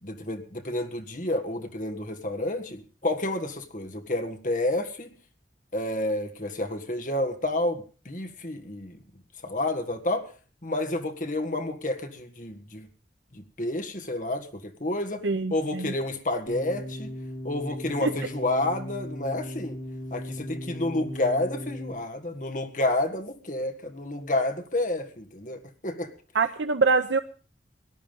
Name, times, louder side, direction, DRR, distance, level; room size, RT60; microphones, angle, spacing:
voice 1, 0.0-5.1 5.7-9.0 9.4-10.3 10.6-12.9 13.3-15.2 15.5-17.1 17.4-19.8 20.1-26.1, left 1 dB, 45° left, 6 dB, 1.8 m, -30 dB
voice 2, 15.2-15.9 18.0-18.1 26.3-27.2, right 4 dB, 90° right, 9 dB, 0.7 m, -24 dB
sound 1, 16.5-21.9, left 1 dB, 70° left, 6.1 m, -37 dB
18.5 x 11.5 x 5.3 m, 0.39 s
head